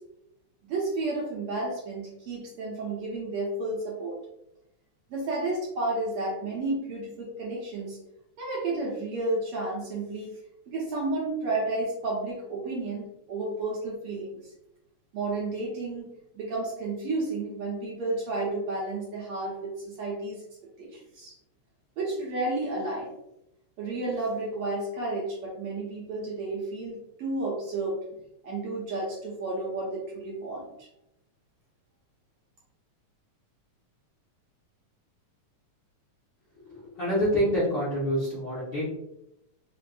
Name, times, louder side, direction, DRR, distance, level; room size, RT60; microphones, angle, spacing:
voice 1, 0.6-4.2 5.1-8.0 8.4-10.4 10.7-14.5 15.1-20.4 20.8-21.4 22.0-23.1 23.8-28.0 28.4-30.9, right 2 dB, 70° right, -4 dB, 1.5 m, -32 dB
voice 2, 36.6-38.9, equal, 55° left, -9 dB, 1.4 m, -27 dB
5.2 x 2.5 x 2.4 m, 0.83 s
omnidirectional pair, 3.4 m